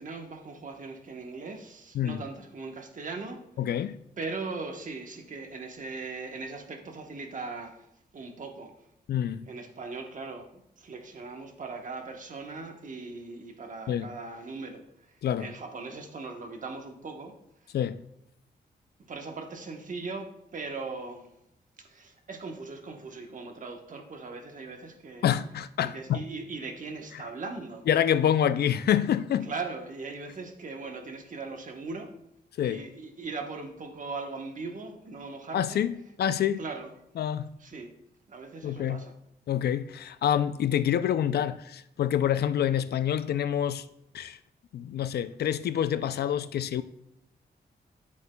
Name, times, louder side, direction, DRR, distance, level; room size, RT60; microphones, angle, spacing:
voice 1, 0.0-3.4 4.2-7.8 8.1-8.7 9.5-14.8 15.4-17.3 19.1-21.3 21.8-25.3 25.8-27.8 29.4-32.1 32.7-35.8 36.6-36.9 37.6-37.9 38.3-39.1, right 3 dB, 50° right, 1.1 m, -39 dB
voice 2, 3.6-4.0 9.1-9.4 13.9-14.1 15.2-15.5 17.7-18.0 25.2-26.2 27.9-29.5 32.6-32.8 35.5-36.6 37.2-37.5 38.6-39.0 39.5-43.8 44.1-44.4 44.7-46.8, left 10 dB, 75° left, 0.4 m, -27 dB
9.8 x 8.1 x 2.3 m
wide cardioid pair, 125°, 17 cm